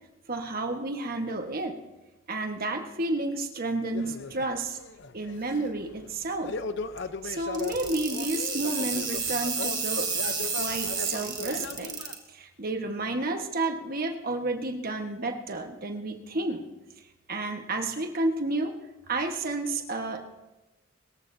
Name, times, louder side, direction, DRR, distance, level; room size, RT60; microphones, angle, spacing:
voice 1, 0.3-1.8 2.3-4.8 5.1-6.6 7.2-10.1 10.5-11.9 12.3-16.7 17.3-18.7 19.1-20.2, right 2 dB, 45° right, 5 dB, 1.3 m, -31 dB
sound 1, 3.9-12.1, left 4 dB, 55° left, 0.7 m, -38 dB
sound 2, 7.5-12.1, right 5 dB, 20° right, 1.7 m, -31 dB
25.0 x 14.5 x 2.7 m, 1.0 s
head